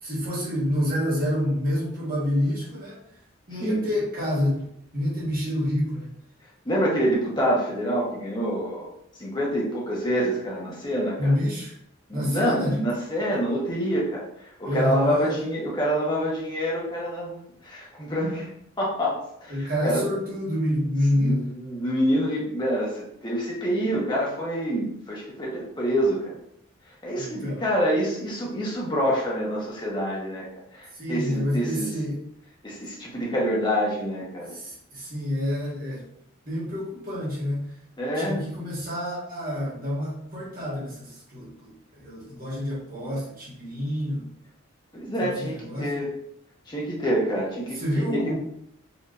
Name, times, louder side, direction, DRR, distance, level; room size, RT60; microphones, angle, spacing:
voice 1, 0.0-3.0 3.5-4.6 4.9-6.1 11.2-11.7 12.1-12.8 14.6-15.4 19.5-21.5 27.2-27.6 30.9-32.2 34.5-36.1 36.4-37.7 38.1-44.3 45.2-45.9 47.7-48.3, left 1 dB, 45° right, -6 dB, 1.5 m, -28 dB
voice 2, 3.5-3.8 6.6-8.9 9.2-11.3 12.1-14.2 14.6-18.5 18.8-20.0 21.1-26.4 27.0-30.5 30.7-31.9 32.6-34.6 38.0-38.4 44.9-46.1 46.7-48.3, equal, 20° left, -4 dB, 1.0 m, -27 dB
4.4 x 2.7 x 2.5 m, 0.71 s
head